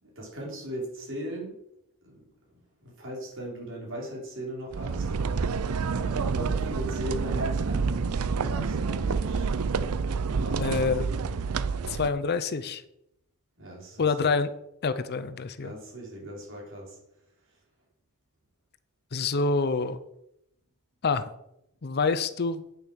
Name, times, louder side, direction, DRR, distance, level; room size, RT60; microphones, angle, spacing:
voice 1, 0.0-1.5 2.0-2.2 2.8-5.1 5.9-9.5 10.2-11.2 13.6-14.3 15.6-17.0, equal, 60° right, -2 dB, 4.3 m, -39 dB
sound 1, 4.7-12.1, right 5 dB, 75° right, 0.5 m, -28 dB
voice 2, 10.6-11.1 11.9-12.8 14.0-14.5 14.8-15.7 19.1-20.0 21.0-21.3 21.8-22.6, left 4 dB, 45° left, 13 dB, 0.6 m, -26 dB
8.7 x 6.8 x 6.3 m, 0.81 s
head